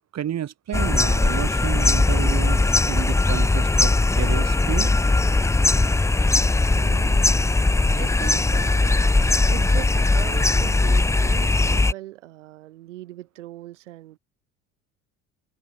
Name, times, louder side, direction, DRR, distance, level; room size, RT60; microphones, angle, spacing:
voice 1, 0.1-4.9, right 10 dB, 45° right, 3.5 m, -31 dB
sound 1, 0.7-11.9, left 2 dB, 10° left, 0.7 m, -19 dB
voice 2, 6.7-7.3 7.9-9.2 9.4-14.2, right 15 dB, 80° right, 6.7 m, -39 dB
hypercardioid pair, 65°, 36 cm